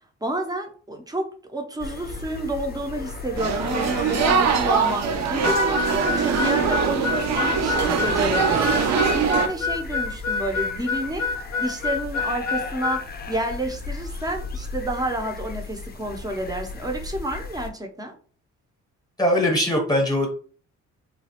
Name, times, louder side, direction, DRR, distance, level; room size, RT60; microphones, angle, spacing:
voice 1, 0.2-1.3 1.5-11.3 11.6-18.1, right 1 dB, 15° right, 3 dB, 0.6 m, -29 dB
sound 1, 1.8-17.7, left 3 dB, 30° left, 0.5 m, -36 dB
sound 2, 3.4-9.5, right 6 dB, 60° right, 0.6 m, -22 dB
Harmonica, 5.4-13.0, left 5 dB, 80° left, 0.6 m, -27 dB
voice 2, 19.2-20.3, left 1 dB, 15° left, 1 dB, 0.9 m, -21 dB
3.0 x 2.3 x 2.8 m, 0.43 s
cardioid pair, 90°, 30 cm